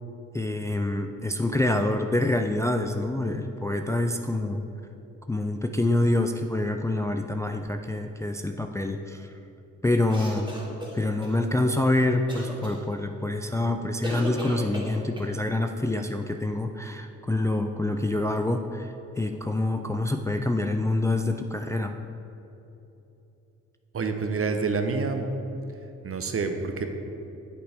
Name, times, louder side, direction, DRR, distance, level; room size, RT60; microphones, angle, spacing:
voice 1, 0.3-4.6 5.3-9.3 9.8-10.5 10.9-18.9 19.2-21.9, left 2 dB, 10° left, 5 dB, 0.4 m, -26 dB
sound 1, 10.1-11.3 12.3-12.8 14.0-15.3, equal, 15° right, 1.9 m, -36 dB
voice 2, 23.9-25.3 26.0-26.8, right 4 dB, 45° right, 6 dB, 0.9 m, -27 dB
8.6 x 7.8 x 3.5 m, 3.0 s
supercardioid pair, 60°, 32 cm